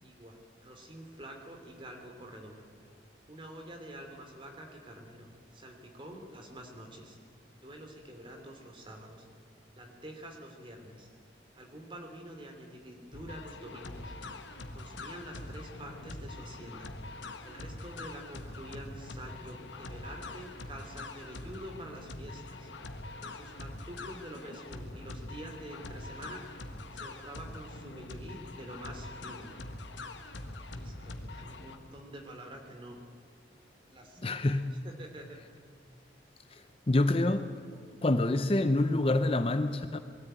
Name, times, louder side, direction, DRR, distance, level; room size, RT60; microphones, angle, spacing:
voice 1, 0.0-2.6 3.3-7.2 7.5-9.3 9.8-11.1 11.6-14.1 14.7-16.9 17.4-22.7 23.2-26.4 26.9-29.5 30.7-33.0 33.8-34.4 34.7-35.4 35.9-36.0, right 1 dB, 25° right, 3 dB, 2.8 m, -47 dB
sound 1, 13.1-31.8, left 2 dB, 80° left, 1.6 m, -44 dB
voice 2, 34.2-34.8 36.9-37.5 38.0-40.0, left 2 dB, 30° left, 10 dB, 0.6 m, -26 dB
21.0 x 13.5 x 9.1 m, 2.3 s
head